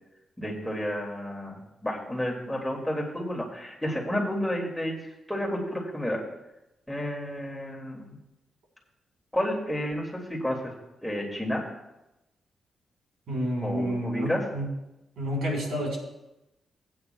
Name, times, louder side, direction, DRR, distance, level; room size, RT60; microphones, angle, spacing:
voice 1, 0.4-5.0 5.3-6.2 6.9-8.2 9.3-10.7 11.0-11.6 13.6-14.4, equal, 5° left, -2 dB, 2.0 m, -31 dB
voice 2, 13.3-14.7 15.2-16.0, equal, 85° right, -1 dB, 4.1 m, -29 dB
19.0 x 8.8 x 2.2 m, 0.92 s
wide cardioid pair, 125°, 0 cm